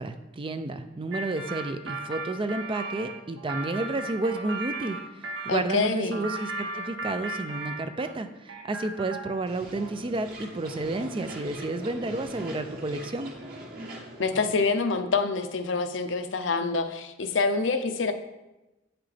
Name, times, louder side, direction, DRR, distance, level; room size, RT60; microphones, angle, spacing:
voice 1, 0.0-13.3, right 2 dB, 25° right, 9 dB, 0.4 m, -31 dB
sound 1, 1.1-5.6 6.1-8.2 8.5-9.5, right 2 dB, 85° right, 0.8 m, -36 dB
voice 2, 5.5-6.2 14.2-18.1, left 4 dB, 70° left, 8 dB, 0.6 m, -26 dB
sound 2, 9.5-14.7, right 1 dB, 50° right, 1.8 m, -41 dB
8.3 x 5.9 x 3.4 m, 0.99 s
head